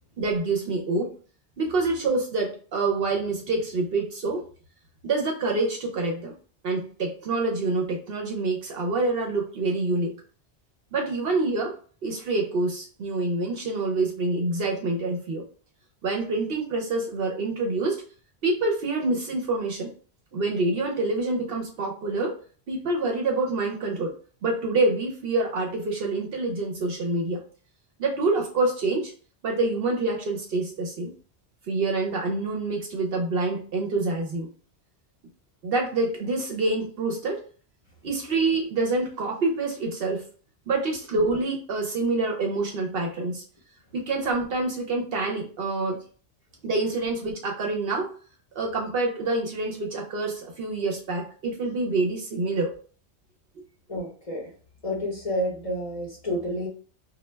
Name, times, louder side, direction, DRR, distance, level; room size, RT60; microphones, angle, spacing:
voice 1, 0.2-1.1 1.6-4.5 5.0-6.3 6.6-10.2 10.9-11.8 12.0-15.4 16.0-18.0 18.4-19.9 20.3-22.4 22.7-24.1 24.4-27.4 28.0-29.1 29.4-31.1 31.7-34.5 35.6-37.4 38.0-40.3 40.7-43.4 43.9-46.0 46.6-48.1 48.6-52.7, right 3 dB, 65° right, 1 dB, 0.7 m, -26 dB
voice 2, 53.9-54.5 54.8-56.7, equal, 40° left, -4 dB, 0.7 m, -29 dB
2.2 x 2.1 x 3.1 m, 0.41 s
omnidirectional pair, 1.2 m